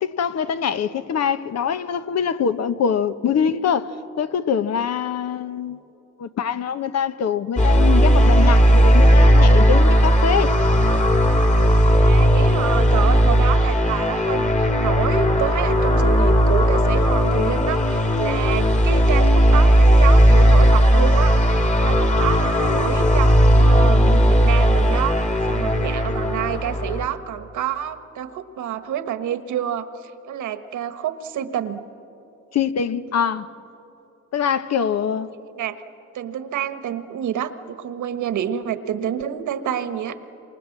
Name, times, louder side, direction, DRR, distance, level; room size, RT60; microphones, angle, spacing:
voice 1, 0.0-3.9 4.2-5.8 6.2-10.5 32.5-33.5 34.3-35.3, left 7 dB, 60° left, 1.0 m, -23 dB
sound 1, 7.6-27.0, equal, 25° left, 2.3 m, -16 dB
voice 2, 12.0-21.5 21.8-31.8 35.5-35.8 36.1-40.2, right 9 dB, 75° right, 1.5 m, -28 dB
27.5 x 26.5 x 7.4 m
cardioid pair, 90°, 30 cm